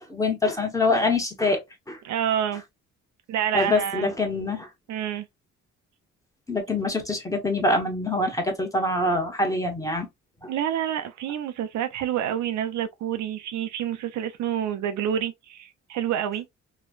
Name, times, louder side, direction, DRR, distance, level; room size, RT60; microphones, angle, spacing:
voice 1, 0.1-1.6 1.9-2.0 3.5-4.7 6.5-10.1 10.4-10.5, left 2 dB, 10° left, 1.0 m, -24 dB
voice 2, 2.0-2.6 3.3-4.1 4.9-5.3 10.5-16.5, right 10 dB, 70° right, 0.5 m, -28 dB
3.1 x 2.2 x 2.3 m
cardioid pair, 90°, 30 cm